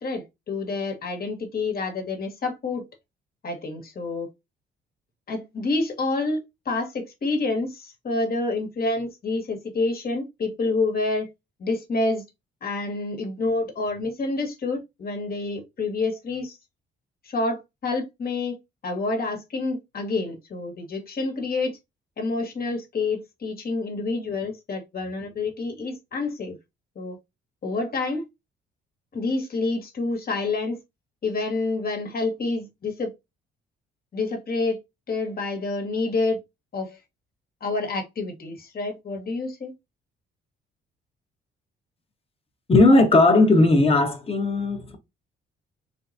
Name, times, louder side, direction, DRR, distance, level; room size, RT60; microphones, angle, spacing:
voice 1, 0.0-2.8 3.4-4.3 5.3-11.3 11.6-12.2 12.6-16.6 17.3-18.6 18.8-21.8 22.2-26.6 27.0-27.2 27.6-28.2 29.1-30.8 31.2-33.1 34.1-34.8 35.1-36.4 36.7-37.0 37.6-39.7, left 3 dB, 50° left, 1.9 m, -28 dB
voice 2, 42.7-45.0, left 2 dB, 30° left, 1.5 m, -17 dB
4.1 x 3.1 x 2.7 m
cardioid pair, 90°, 20 cm